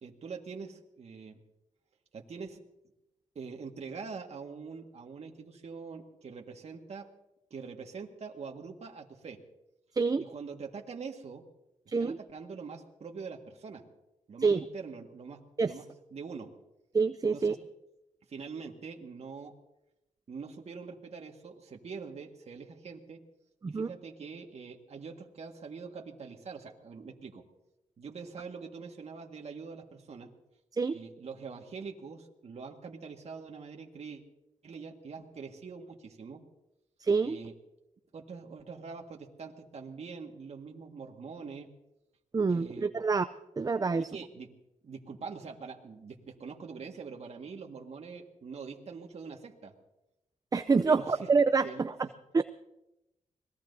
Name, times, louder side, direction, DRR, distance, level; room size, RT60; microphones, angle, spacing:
voice 1, 0.0-1.4 2.1-2.6 3.3-7.1 7.5-9.4 10.2-11.4 12.0-13.8 14.3-15.8 16.1-16.5 17.3-17.6 18.3-19.5 20.3-23.2 23.6-27.4 28.0-30.3 30.9-34.2 34.6-36.4 37.2-37.5 38.1-41.7 42.5-42.9 43.9-44.5 44.8-49.7 50.8-51.3 51.6-51.8, right 5 dB, 55° right, 1 dB, 1.7 m, -44 dB
voice 2, 16.9-17.6 23.6-23.9 30.8-31.0 37.0-37.4 42.3-43.3 43.6-44.1 50.5-52.1 52.3-52.4, right 4 dB, 30° right, 12 dB, 0.5 m, -27 dB
26.5 x 19.5 x 2.7 m, 0.89 s
cardioid pair, 70°, 13 cm